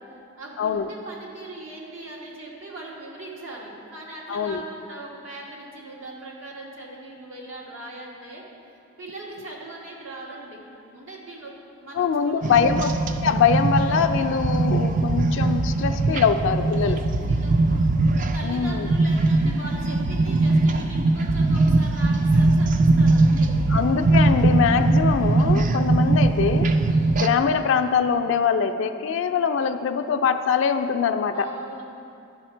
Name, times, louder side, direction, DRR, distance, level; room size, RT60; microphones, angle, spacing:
voice 1, 0.0-8.4 9.0-10.6 10.9-12.4 13.2-13.4 16.8-17.0 17.3-23.5 26.8-27.2 29.1-29.4 31.3-31.8, right 2 dB, 85° right, -4 dB, 1.7 m, -40 dB
voice 2, 0.6-0.9 4.3-4.6 12.0-12.9 13.2-17.0 18.4-18.9 23.7-26.7 27.2-31.5, left 6 dB, 70° left, 7 dB, 0.4 m, -23 dB
sound 1, 12.4-27.3, right 2 dB, 40° right, 0.4 m, -21 dB
11.0 x 5.6 x 4.4 m, 2.7 s
head